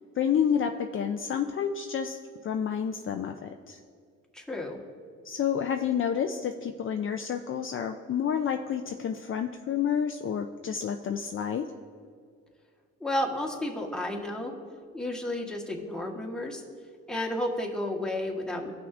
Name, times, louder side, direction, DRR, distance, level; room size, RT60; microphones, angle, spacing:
voice 1, 0.2-3.8 5.2-11.7, left 8 dB, 45° left, 5 dB, 0.5 m, -29 dB
voice 2, 4.3-4.8 13.0-14.5 14.9-16.6 17.1-18.7, left 1 dB, ahead, -1 dB, 1.3 m, -32 dB
17.5 x 6.0 x 2.5 m, 2.2 s
cardioid pair, 90°, 30 cm